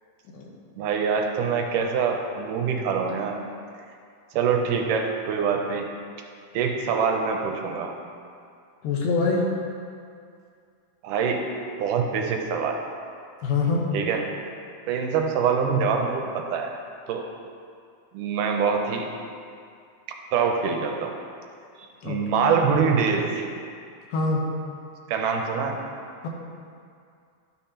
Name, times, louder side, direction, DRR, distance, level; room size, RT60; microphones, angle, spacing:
voice 1, 0.8-3.5 4.3-5.9 6.5-8.0 11.0-11.5 11.8-12.8 13.9-14.3 14.9-16.8 17.1-17.2 18.1-19.1 20.3-21.1 22.0-23.4 25.1-25.8, right 6 dB, 85° right, 2 dB, 2.1 m, -24 dB
voice 2, 8.8-9.5 13.4-13.8 22.0-22.2 24.1-24.5, left 4 dB, 90° left, -1 dB, 2.6 m, -24 dB
12.0 x 5.6 x 2.8 m, 2.3 s
omnidirectional pair, 3.8 m